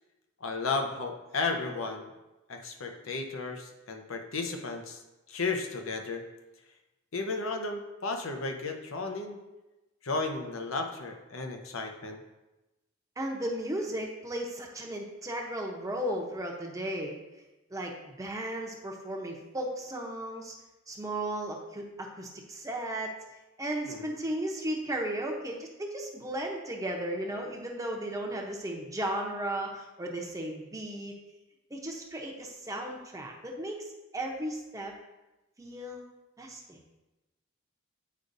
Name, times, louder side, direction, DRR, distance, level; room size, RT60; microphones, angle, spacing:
voice 1, 0.4-2.1 2.5-5.0 5.3-6.2 7.1-9.4 10.0-12.2 23.9-24.1, left 3 dB, 75° left, 4 dB, 0.8 m, -34 dB
voice 2, 13.2-17.2 17.7-20.5 20.9-23.1 23.6-31.1 31.7-34.9 35.6-36.0 36.4-36.8, right 1 dB, 15° right, 0 dB, 0.7 m, -35 dB
8.4 x 4.9 x 2.6 m, 1.0 s
head